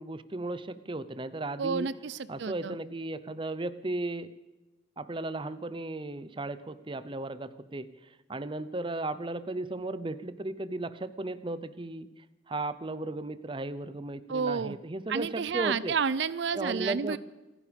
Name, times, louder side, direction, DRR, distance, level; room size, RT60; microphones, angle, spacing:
voice 1, 0.0-1.9 2.3-4.3 5.0-12.1 12.5-16.0 16.5-17.2, right 2 dB, 25° right, 15 dB, 0.6 m, -35 dB
voice 2, 1.6-2.8 14.3-14.8 15.1-17.2, right 6 dB, 70° right, 18 dB, 0.5 m, -30 dB
26.5 x 10.0 x 5.2 m, 1.1 s
head